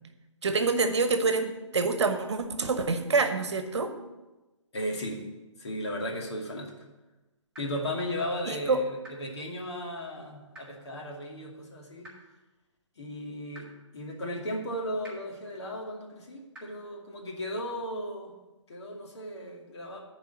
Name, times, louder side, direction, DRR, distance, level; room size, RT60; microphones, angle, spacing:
voice 1, 0.4-3.9 8.4-8.8, right 4 dB, 60° right, 8 dB, 1.1 m, -26 dB
voice 2, 4.7-5.2 5.6-6.7 7.6-12.1 13.0-13.7 13.9-18.3 18.7-20.0, equal, 60° left, -1 dB, 2.5 m, -35 dB
sound 1, 7.5-7.6 9.0-9.1 10.5-10.6 12.0-12.1 13.5-13.6 15.0-15.1 16.5-16.6, right 1 dB, 5° right, 4.0 m, -46 dB
11.0 x 4.9 x 7.4 m, 1.1 s
figure-of-eight pair, 145°, 16 cm